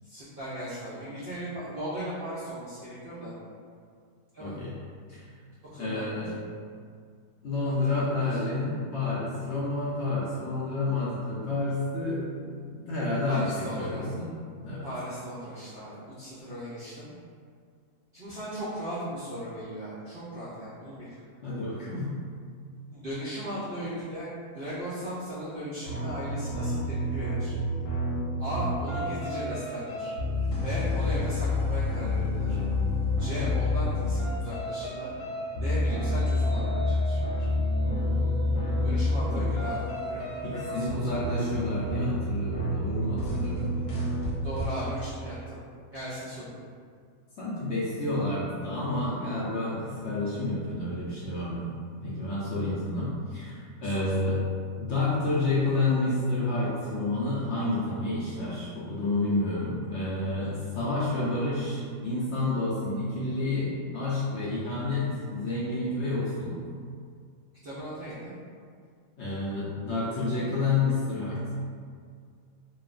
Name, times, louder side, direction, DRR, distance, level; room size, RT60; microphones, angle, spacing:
voice 1, 0.0-3.3 4.3-4.5 5.7-6.2 7.6-8.4 13.3-14.1 14.8-17.1 18.1-21.1 22.9-27.5 28.4-30.1 30.6-32.6 33.2-35.1 35.6-37.5 38.8-39.8 40.1-41.2 44.4-45.6 45.9-46.4 53.8-54.1 67.6-68.3, equal, 65° right, -11 dB, 0.5 m, -37 dB
voice 2, 4.4-4.7 5.1-5.2 5.8-6.3 7.4-12.2 12.5-14.3 14.6-14.9 21.4-22.1 38.6-39.0 39.3-39.4 40.4-43.7 47.4-51.7 52.0-54.4 54.8-66.6 69.2-71.4, left 2 dB, 65° left, -8 dB, 0.7 m, -29 dB
sound 1, 25.9-44.7, left 1 dB, 85° left, 1.1 m, -29 dB
3.0 x 2.1 x 2.4 m, 2.1 s
omnidirectional pair, 1.5 m